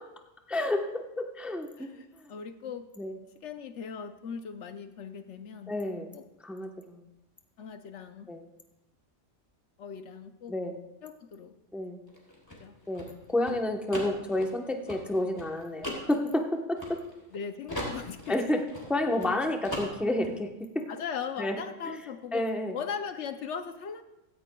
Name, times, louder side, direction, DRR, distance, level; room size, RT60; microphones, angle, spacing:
voice 1, 0.5-1.9 2.2-2.3 3.0-3.1 5.7-6.1 6.4-7.0 8.3-8.5 10.5-10.8 11.7-12.0 12.9-17.0 18.3-20.9 21.4-21.5 21.9-22.0 22.3-22.8, left 1 dB, ahead, 3 dB, 0.8 m, -30 dB
voice 2, 1.8-2.9 3.4-5.7 6.1-6.2 7.6-8.3 9.8-10.5 11.0-11.5 12.6-12.7 17.3-18.3 20.9-22.4 22.7-24.0, left 7 dB, 70° left, 9 dB, 1.0 m, -39 dB
sound 1, 12.1-17.4 17.7-19.4 19.6-20.3, left 1 dB, 15° left, 3.1 m, -39 dB
16.0 x 14.5 x 2.3 m, 0.92 s
omnidirectional pair, 1.3 m